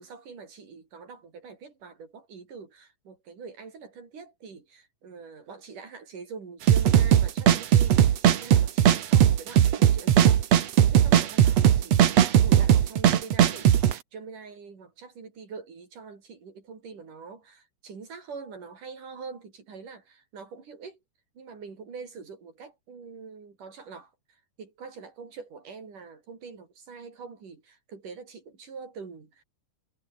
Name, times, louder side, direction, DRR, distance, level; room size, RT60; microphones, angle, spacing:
voice 1, 0.0-12.1 12.4-13.7 14.1-21.0 21.4-29.4, right 5 dB, 80° right, 6.3 m, -44 dB
sound 1, 6.7-13.9, right 10 dB, 60° right, 2.4 m, -19 dB
omnidirectional pair, 3.6 m